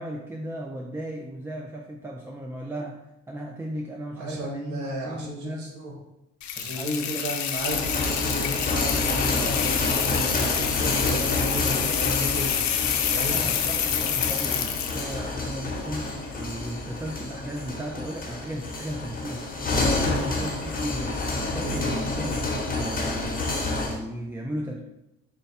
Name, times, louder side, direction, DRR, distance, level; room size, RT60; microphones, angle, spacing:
voice 1, 0.0-3.0 3.3-5.7 6.7-7.3 13.3-19.5 19.9-21.2 21.5-22.4 22.8-24.8, right 1 dB, 10° right, 1 dB, 0.4 m, -35 dB
voice 2, 4.2-5.9 6.5-9.6 10.0-12.6 13.1-13.4 20.0-20.3 21.6-22.0, right 1 dB, 75° right, -1 dB, 1.2 m, -34 dB
sound 1, 6.4-15.1, left 9 dB, 65° left, 0.5 m, -27 dB
sound 2, 7.6-24.0, left 2 dB, 30° left, 1.0 m, -29 dB
4.4 x 2.2 x 4.1 m, 0.93 s
cardioid pair, 90°, 30 cm